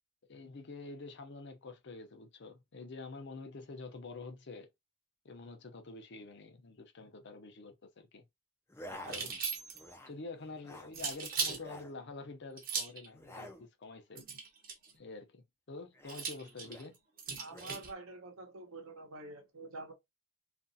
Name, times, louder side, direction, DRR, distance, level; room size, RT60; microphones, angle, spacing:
voice 1, 0.3-4.7 5.2-8.2 8.9-9.3 10.1-14.3 14.9-17.0, left 3 dB, 55° left, 0.6 m, -47 dB
sound 1, 8.7-9.4 9.7-10.2 10.5-10.9 11.5-12.0 13.1-13.7 15.9-16.9 17.5-17.8, left 1 dB, 10° left, 0.3 m, -50 dB
sound 2, 9.0-9.9 10.9-11.6 12.6-13.1 14.1-14.9 16.1-17.9, right 5 dB, 45° right, 1.0 m, -38 dB
voice 2, 17.4-19.9, right 2 dB, 75° right, 0.8 m, -47 dB
2.8 x 2.5 x 2.6 m
head